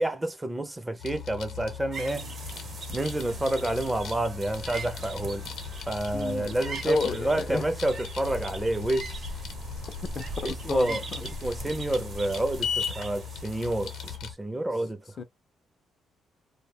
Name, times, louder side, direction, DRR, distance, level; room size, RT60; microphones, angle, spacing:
voice 1, 0.0-2.3 2.9-5.4 5.9-9.1 10.4-11.0 11.4-15.2, right 1 dB, 15° right, 0.5 m, -29 dB
sound 1, 1.0-14.3, left 7 dB, 75° left, 0.7 m, -38 dB
sound 2, 1.9-14.2, right 4 dB, 45° right, 0.7 m, -42 dB
sound 3, 2.8-12.7, right 1 dB, 85° right, 0.9 m, -44 dB
voice 2, 6.1-6.6 6.9-7.7 10.0-11.0 15.2-15.3, left 5 dB, 50° left, 0.4 m, -32 dB
2.2 x 2.0 x 3.3 m
cardioid pair, 90°, 0 cm